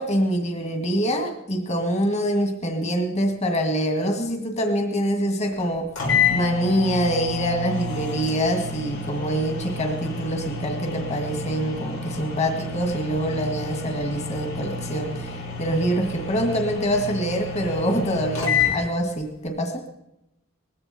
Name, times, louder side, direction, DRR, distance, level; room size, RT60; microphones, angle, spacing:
voice 1, 0.0-5.9 6.3-19.9, equal, 35° left, 4 dB, 2.1 m, -25 dB
sound 1, 5.6-5.7 6.0-18.8, left 4 dB, 75° left, 5.8 m, -29 dB
20.0 x 15.5 x 4.4 m, 0.85 s
head